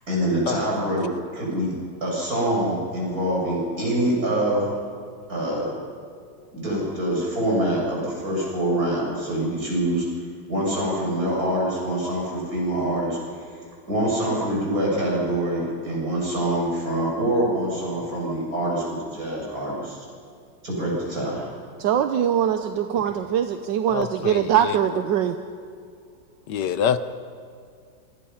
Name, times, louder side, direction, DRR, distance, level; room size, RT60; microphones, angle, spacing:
voice 1, 0.1-1.8 2.0-4.8 5.3-5.8 6.5-10.1 10.5-13.2 13.9-20.0 20.6-21.5, right 1 dB, 50° right, -4 dB, 7.9 m, -25 dB
voice 2, 21.8-25.4, right 9 dB, 75° right, 7 dB, 1.5 m, -22 dB
voice 3, 23.9-25.0 26.5-27.0, left 8 dB, 70° left, 11 dB, 1.4 m, -26 dB
27.0 x 24.5 x 5.7 m, 2.2 s
omnidirectional pair, 2.0 m